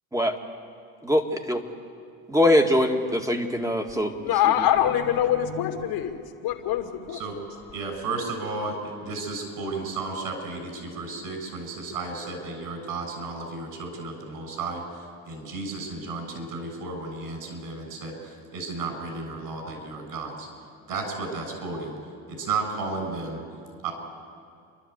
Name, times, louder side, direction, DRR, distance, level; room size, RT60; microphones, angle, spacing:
voice 1, 2.3-4.1, left 1 dB, 10° right, 4 dB, 2.1 m, -22 dB
voice 2, 3.9-7.4, left 11 dB, 55° left, 3 dB, 2.4 m, -25 dB
voice 3, 7.7-8.8 9.0-14.8 15.3-20.5 20.9-21.9 22.3-23.4 23.8-23.9, right 3 dB, 55° right, 4 dB, 7.0 m, -33 dB
29.5 x 12.0 x 8.2 m, 2.3 s
hypercardioid pair, 85°, 43 cm